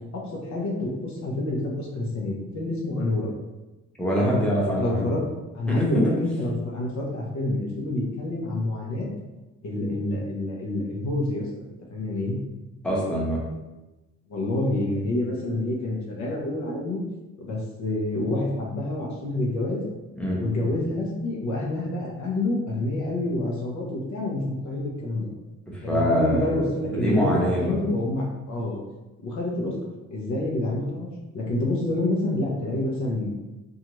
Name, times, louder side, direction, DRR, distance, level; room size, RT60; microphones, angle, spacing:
voice 1, 0.5-3.3 4.2-4.3 4.8-5.2 5.5-9.1 9.6-11.5 11.9-12.4 14.3-17.0 17.4-19.8 20.3-25.3 25.8-28.8 29.2-29.7 30.1-31.1 31.3-33.3, left 2 dB, 70° left, -2 dB, 0.8 m, -27 dB
voice 2, 4.0-5.0 5.7-5.8 12.8-13.4 20.1-20.4 25.7-26.6 26.9-27.8, equal, 5° left, -5 dB, 0.8 m, -24 dB
2.6 x 2.4 x 3.0 m, 1.1 s
cardioid pair, 90°, 30 cm